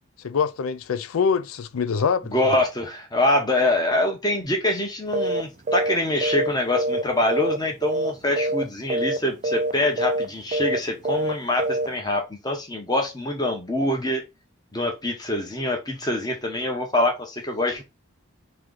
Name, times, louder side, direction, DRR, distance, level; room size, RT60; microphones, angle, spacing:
voice 1, 0.2-2.5, left 6 dB, 85° left, 0.4 m, -24 dB
voice 2, 2.2-14.2 14.7-17.8, left 1 dB, 20° left, 0.9 m, -25 dB
sound 1, 5.1-5.4 5.7-5.9 6.2-7.6 7.8-8.1 8.4-8.6 8.9-9.2 9.4-9.7 10.0-10.3 10.5-10.8 11.0-11.3 11.6-11.9, right 1 dB, 35° right, 0.4 m, -25 dB
3.1 x 3.1 x 3.8 m
head